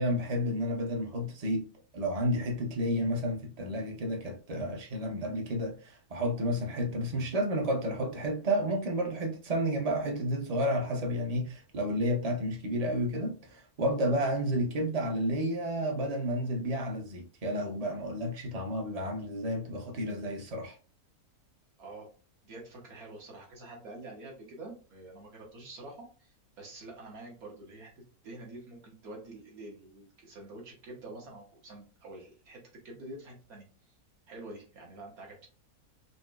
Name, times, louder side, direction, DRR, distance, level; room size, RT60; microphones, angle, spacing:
voice 1, 0.0-1.7 1.9-20.8, equal, 40° right, 0.5 m, -31 dB
voice 2, 21.8-22.1 22.4-33.7 34.3-35.5, right 2 dB, 75° right, 1.6 m, -47 dB
5.1 x 2.0 x 2.3 m
omnidirectional pair, 1.6 m